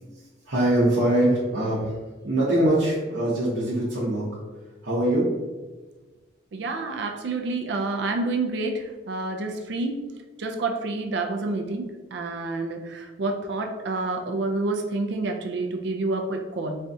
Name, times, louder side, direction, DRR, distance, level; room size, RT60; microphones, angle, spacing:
voice 1, 0.5-1.9 2.2-4.3 4.8-5.3, right 1 dB, 80° right, -8 dB, 0.8 m, -22 dB
voice 2, 6.5-10.0 10.4-16.8, right 3 dB, 65° right, 4 dB, 0.4 m, -28 dB
4.2 x 2.3 x 2.6 m, 1.2 s
head